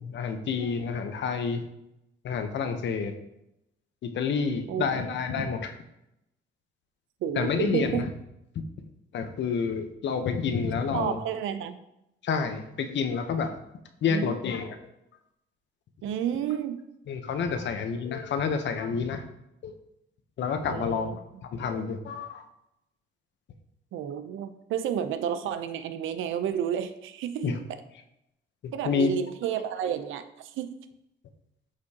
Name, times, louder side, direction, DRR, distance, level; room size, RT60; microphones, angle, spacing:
voice 1, 0.0-1.6 2.2-3.1 4.0-5.8 7.4-8.1 9.1-11.2 12.2-13.5 14.0-14.8 17.1-19.2 19.6-19.7 20.4-21.1 21.5-22.4 27.4-27.6 28.6-29.1, left 6 dB, 65° left, 7 dB, 0.9 m, -29 dB
voice 2, 7.2-8.1 10.9-11.8 14.1-14.4 16.0-16.9 17.5-17.6 20.7-21.2 23.9-27.8 28.7-30.8, right 9 dB, 80° right, 11 dB, 0.6 m, -31 dB
8.2 x 5.1 x 2.9 m, 0.85 s
cardioid pair, 90°, 20 cm